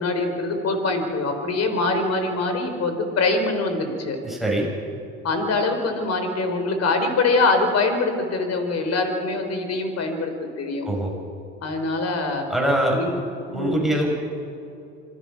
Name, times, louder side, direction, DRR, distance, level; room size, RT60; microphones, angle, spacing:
voice 1, 0.0-4.2 5.2-10.3 10.6-10.8 11.6-12.5 12.9-13.2 13.4-13.9, left 3 dB, 45° left, 6 dB, 4.4 m, -24 dB
voice 2, 4.2-4.7 10.8-11.1 12.5-13.0 13.5-14.1, right 1 dB, ahead, -1 dB, 6.6 m, -23 dB
26.0 x 19.0 x 6.0 m, 2.8 s
hypercardioid pair, 80°, 34 cm